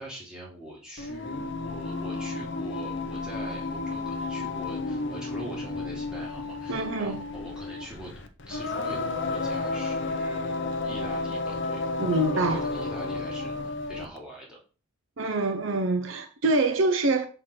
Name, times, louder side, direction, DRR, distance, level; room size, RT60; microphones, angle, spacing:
voice 1, 0.0-8.1 8.5-11.8 12.3-14.6, right 1 dB, 5° right, 2.7 m, -43 dB
Singing, 1.0-14.2, left 3 dB, 55° left, 0.8 m, -32 dB
voice 2, 6.7-7.2 12.0-12.7 15.2-17.3, right 2 dB, 60° right, 0.7 m, -25 dB
5.8 x 4.5 x 6.0 m
head